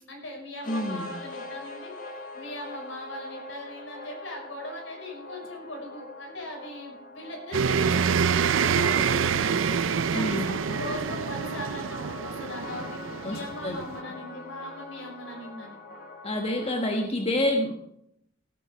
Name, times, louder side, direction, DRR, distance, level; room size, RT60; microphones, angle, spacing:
voice 1, 0.1-1.9 2.3-9.5 10.1-15.8, left 1 dB, 70° left, 1 dB, 5.3 m, -40 dB
sound 1, 0.6-17.0, left 2 dB, 45° left, 2.2 m, -42 dB
voice 2, 0.7-1.1 10.1-10.6 13.2-13.8 16.2-17.7, left 1 dB, 30° left, 2 dB, 1.3 m, -28 dB
sound 2, 7.5-14.0, right 6 dB, 80° right, 0.5 m, -26 dB
17.0 x 9.3 x 4.7 m, 0.74 s
head